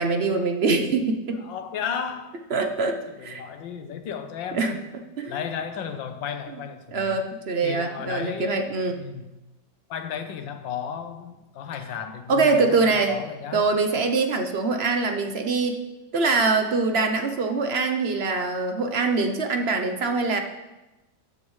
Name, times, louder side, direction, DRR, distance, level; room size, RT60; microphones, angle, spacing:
voice 1, 0.0-1.4 2.5-3.4 4.5-4.8 5.2-5.4 6.9-9.0 12.3-13.2 13.5-15.8 16.1-20.4, right 3 dB, 50° right, 5 dB, 0.7 m, -23 dB
voice 2, 1.3-2.4 3.1-4.9 5.3-7.2 7.6-8.6 8.9-9.3 9.9-13.7, left 7 dB, 75° left, 8 dB, 1.6 m, -34 dB
16.0 x 9.6 x 3.2 m, 1.0 s
omnidirectional pair, 2.1 m